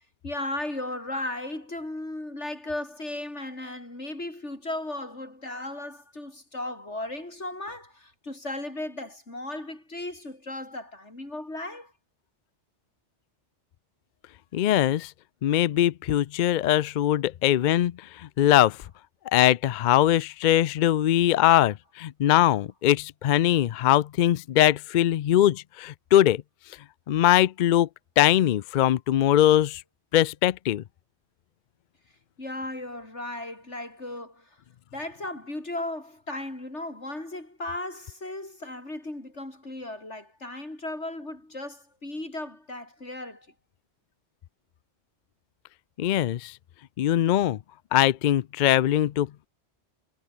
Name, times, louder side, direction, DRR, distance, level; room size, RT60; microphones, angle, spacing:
voice 1, 0.2-11.9 32.4-34.6 34.9-43.5, left 2 dB, 85° left, 6.7 m, -36 dB
voice 2, 14.5-15.1 15.4-18.8 19.3-26.4 27.1-27.9 28.2-29.8 30.1-30.8 46.0-46.5 47.0-47.6 47.9-49.5, left 12 dB, 60° left, 0.5 m, -21 dB
omnidirectional pair, 1.2 m